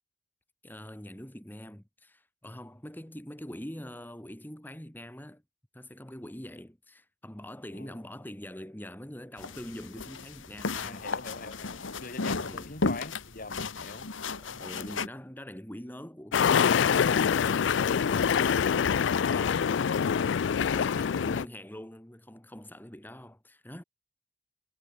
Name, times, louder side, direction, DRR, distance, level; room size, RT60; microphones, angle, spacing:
voice 1, 0.6-5.4 5.7-11.1 12.5-12.8 14.4-19.7 20.7-23.8, equal, 10° left, 1.6 m, -44 dB
sound 1, 9.4-15.1, left 3 dB, 90° left, 1.4 m, -34 dB
voice 2, 10.7-14.1, left 3 dB, 45° left, 1.9 m, -43 dB
sound 2, 16.3-21.4, left 7 dB, 70° left, 0.4 m, -25 dB
head